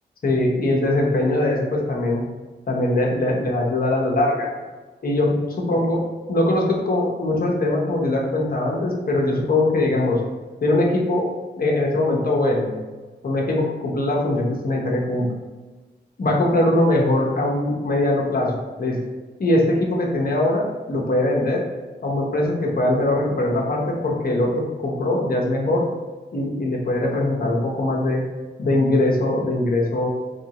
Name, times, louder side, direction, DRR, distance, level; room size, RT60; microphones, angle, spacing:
voice 1, 0.2-2.2 2.7-4.6 5.0-5.3 5.7-6.0 6.3-10.2 10.6-11.3 11.6-12.8 13.2-15.3 16.2-19.0 19.4-21.6 22.0-25.9 26.3-28.2 28.6-30.1, left 1 dB, 50° left, -2 dB, 0.8 m, -21 dB
3.0 x 2.6 x 2.8 m, 1.3 s
cardioid pair, 65°, 19 cm